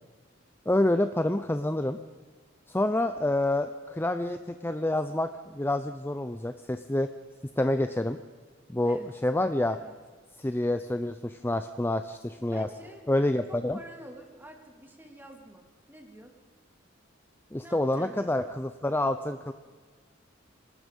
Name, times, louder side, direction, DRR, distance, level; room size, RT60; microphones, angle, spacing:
voice 1, 0.7-2.0 2.7-7.1 7.6-8.2 8.7-9.8 10.4-12.7 13.1-13.8 17.5-19.5, left 1 dB, 10° left, 9 dB, 0.6 m, -28 dB
voice 2, 9.7-10.0 12.5-13.1 13.5-16.3 17.6-18.4, right 1 dB, 10° right, 3 dB, 2.6 m, -48 dB
25.5 x 19.5 x 5.4 m, 1.5 s
head